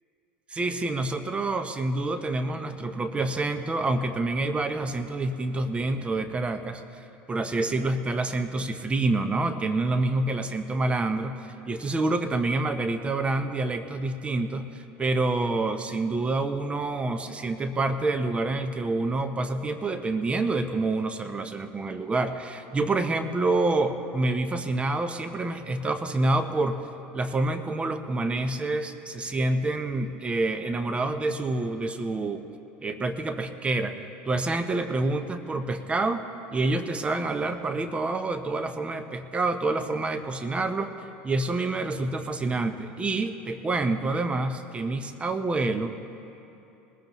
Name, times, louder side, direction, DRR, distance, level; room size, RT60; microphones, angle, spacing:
voice 1, 0.5-6.8 7.3-11.4 11.7-26.8 27.1-32.4 32.8-36.3 36.5-40.9 41.2-45.9, right 2 dB, 20° right, 9 dB, 0.8 m, -27 dB
21.0 x 14.5 x 3.1 m, 2.9 s
supercardioid pair, 95°, 5 cm